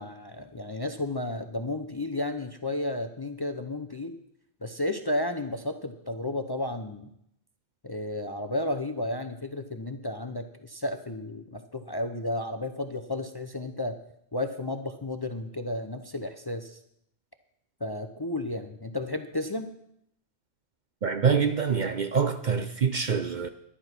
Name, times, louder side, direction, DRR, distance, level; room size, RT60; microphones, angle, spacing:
voice 1, 0.0-4.1 4.6-7.1 7.8-13.9 14.3-16.8 17.8-19.7, left 1 dB, 25° left, 0.6 m, -32 dB
voice 2, 21.0-23.5, right 6 dB, 50° right, 0.6 m, -25 dB
11.0 x 11.0 x 5.9 m
omnidirectional pair, 1.2 m